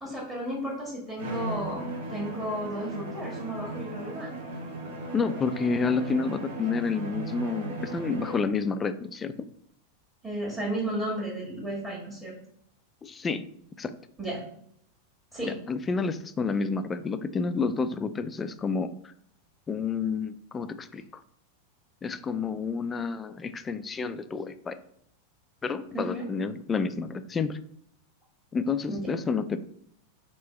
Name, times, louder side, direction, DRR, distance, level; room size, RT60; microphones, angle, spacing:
voice 1, 0.0-4.3 10.2-12.4 14.2-14.4 15.3-15.5 25.9-26.2 28.9-29.0, right 1 dB, 15° right, -7 dB, 1.6 m, -33 dB
Bowed string instrument, 1.2-8.6, right 2 dB, 55° right, 1.1 m, -37 dB
voice 2, 5.1-9.4 13.0-13.4 13.8-13.9 15.4-19.1 19.7-21.2 22.0-24.8 25.6-27.6 28.5-29.6, left 4 dB, 20° left, 12 dB, 0.3 m, -29 dB
3.2 x 3.0 x 4.3 m, 0.67 s
figure-of-eight pair, 90°, 0 cm